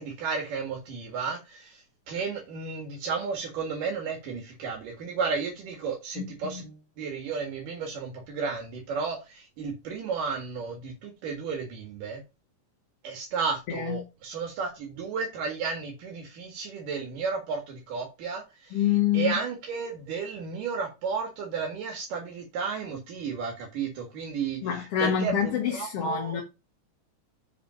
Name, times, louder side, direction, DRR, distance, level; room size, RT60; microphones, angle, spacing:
voice 1, 0.0-12.2 13.0-18.8 19.1-26.4, right 5 dB, 80° right, 3.4 m, -33 dB
voice 2, 6.2-6.6 13.7-14.0 18.7-19.3 24.6-26.4, left 9 dB, 55° left, 2.0 m, -27 dB
6.8 x 5.2 x 5.7 m
omnidirectional pair, 3.7 m